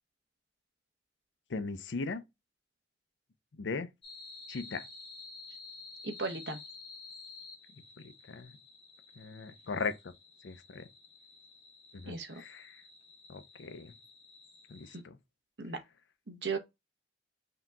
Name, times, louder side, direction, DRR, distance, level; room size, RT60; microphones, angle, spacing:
voice 1, 1.5-2.2 3.5-3.9 4.5-4.9 8.0-8.6 9.2-10.1 10.4-10.9 11.9-12.8 13.3-13.9 14.7-15.2, left 4 dB, 85° left, 0.5 m, -39 dB
sound 1, 4.0-15.0, left 3 dB, 30° left, 1.0 m, -52 dB
voice 2, 6.0-6.6 12.1-12.4 15.6-15.8 16.3-16.6, right 4 dB, 70° right, 0.9 m, -36 dB
5.7 x 2.8 x 2.2 m
head